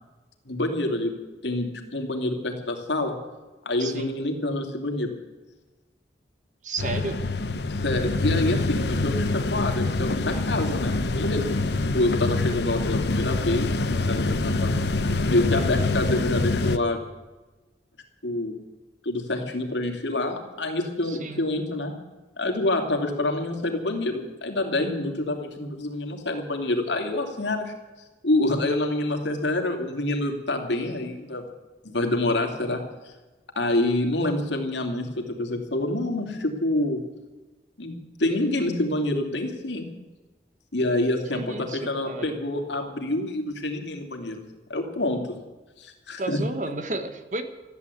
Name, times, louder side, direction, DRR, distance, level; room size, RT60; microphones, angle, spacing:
voice 1, 0.4-1.1 1.4-3.1 3.6-5.1 7.7-11.6 11.9-14.7 15.3-17.0 18.2-18.5 19.0-21.9 22.4-27.7 28.2-31.4 31.8-32.8 33.6-37.0 37.8-39.9 40.7-44.4 44.7-45.2 45.8-46.4, left 2 dB, 90° left, 3 dB, 2.7 m, -27 dB
voice 2, 3.8-4.1 6.6-7.2 21.0-21.5 41.3-42.4 46.2-47.4, right 2 dB, 45° right, 9 dB, 1.3 m, -32 dB
sound 1, 6.8-16.8, left 2 dB, 70° left, 0.9 m, -25 dB
14.5 x 11.0 x 8.3 m, 1.2 s
head